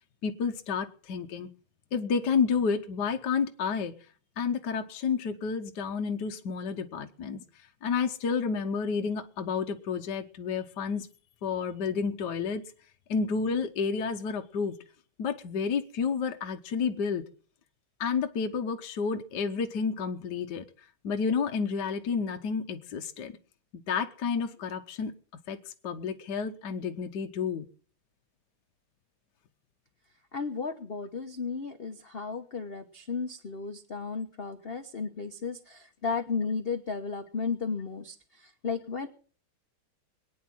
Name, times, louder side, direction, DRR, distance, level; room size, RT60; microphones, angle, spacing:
voice 1, 0.2-1.5 1.9-3.9 4.4-7.4 7.8-11.1 11.4-12.6 13.1-14.8 15.2-17.2 18.0-20.6 21.0-23.3 23.9-25.1 25.5-25.6 25.8-27.7, left 5 dB, 60° left, 4 dB, 1.4 m, -30 dB
voice 2, 30.3-39.1, left 5 dB, 40° left, 7 dB, 0.9 m, -34 dB
22.5 x 9.5 x 6.1 m, 0.43 s
omnidirectional pair, 2.4 m